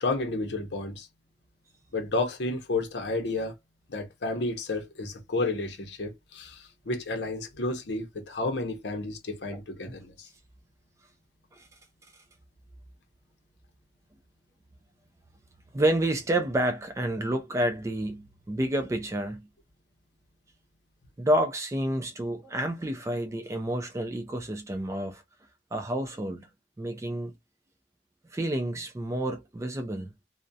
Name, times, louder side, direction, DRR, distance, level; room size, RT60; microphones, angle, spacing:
voice 1, 0.0-1.1 1.9-3.5 3.9-10.3, left 2 dB, 65° left, 0.6 m, -31 dB
voice 2, 9.5-9.9 11.5-11.7 15.7-19.4 21.2-25.2 25.7-26.5 26.8-27.3 28.3-30.1, right 1 dB, 15° right, 0.3 m, -29 dB
2.3 x 2.1 x 2.5 m
head